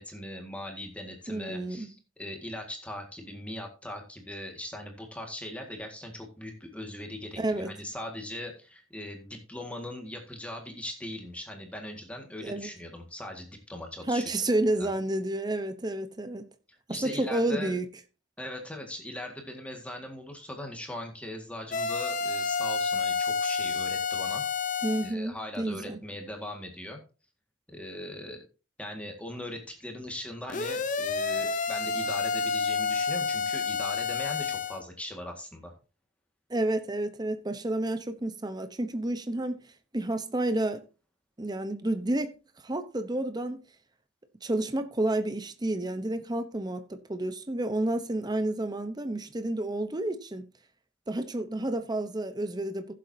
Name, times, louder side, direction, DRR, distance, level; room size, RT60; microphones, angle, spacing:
voice 1, 0.0-14.3 14.8-14.9 16.7-17.8 18.4-24.4 25.0-27.0 27.7-28.4 28.8-35.7, left 1 dB, 5° left, 1.8 m, -40 dB
voice 2, 1.3-1.9 7.4-7.7 12.4-12.7 14.1-16.4 16.9-17.9 24.8-26.0 36.5-39.6 39.9-40.8 41.4-42.3 42.6-43.6 44.4-50.5 51.1-52.9, right 1 dB, 20° right, 0.8 m, -30 dB
sound 1, 21.7-25.1 30.5-34.8, left 5 dB, 45° left, 0.7 m, -29 dB
15.5 x 7.6 x 2.7 m
head